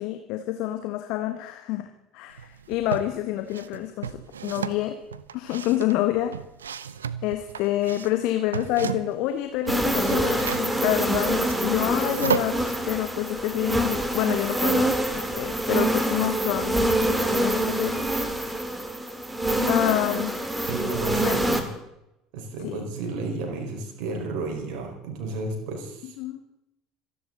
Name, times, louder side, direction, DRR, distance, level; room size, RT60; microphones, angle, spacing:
voice 1, 0.0-5.0 5.3-6.4 7.2-12.6 12.8-17.9 19.7-20.4 21.2-21.3 22.6-22.8 26.2-26.4, left 14 dB, 55° left, 8 dB, 1.3 m, -28 dB
sound 1, 2.4-3.1 3.5-9.3 9.5-12.7, right 7 dB, 80° right, 0.7 m, -33 dB
sound 2, 9.7-21.6, right 1 dB, 10° right, 2.5 m, -25 dB
voice 2, 20.6-21.7 22.3-26.1, right 3 dB, 55° right, 2 dB, 4.8 m, -32 dB
27.0 x 11.0 x 4.0 m, 0.86 s
figure-of-eight pair, 65°, 0 cm